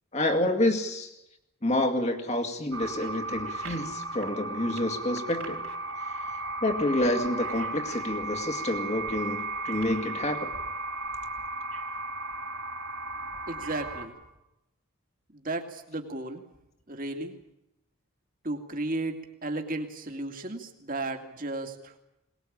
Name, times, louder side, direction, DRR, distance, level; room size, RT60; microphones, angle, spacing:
voice 1, 0.1-1.1 1.6-5.6 6.1-6.2 6.6-10.5, left 1 dB, 30° left, 5 dB, 2.1 m, -28 dB
sound 1, 2.7-14.1, right 2 dB, 65° right, 4.5 m, -35 dB
voice 2, 13.5-14.1 15.3-16.4 16.9-17.4 18.4-22.0, right 2 dB, 40° right, 5 dB, 2.5 m, -34 dB
22.0 x 20.0 x 8.7 m, 0.90 s
head